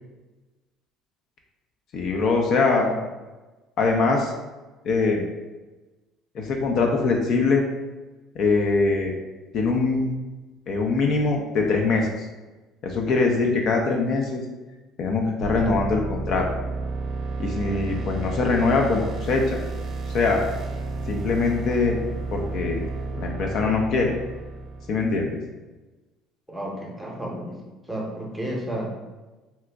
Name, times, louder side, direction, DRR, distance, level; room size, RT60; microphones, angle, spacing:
voice 1, 1.9-2.9 3.8-4.3 4.8-5.2 6.3-7.7 8.4-9.1 9.5-10.2 10.7-12.1 12.8-14.4 15.0-16.5 17.4-19.6 20.1-20.4 21.1-22.0 22.3-22.8 23.2-24.1 24.9-25.4, left 3 dB, 55° left, 1 dB, 0.5 m, -22 dB
sound 1, 15.4-25.2, right 3 dB, 55° right, 0.5 m, -31 dB
voice 2, 26.5-27.6 27.9-28.9, right 1 dB, 5° right, -2 dB, 0.8 m, -32 dB
2.9 x 2.3 x 3.4 m, 1.2 s
cardioid pair, 110°, 0 cm